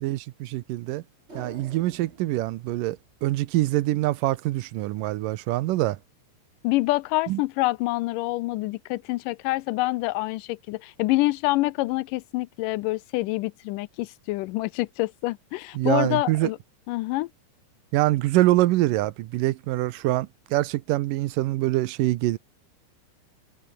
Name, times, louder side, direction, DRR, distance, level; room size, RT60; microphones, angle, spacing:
voice 1, 0.0-1.0 1.4-6.0 7.3-7.4 15.8-16.5 17.9-22.4, right 16 dB, 85° right, 2.4 m, -24 dB
sound 1, 1.3-3.8 4.1-4.2, right 2 dB, 20° right, 5.3 m, -48 dB
voice 2, 6.6-16.6 16.9-17.3, left 20 dB, 80° left, 2.1 m, -26 dB
omnidirectional pair, 3.9 m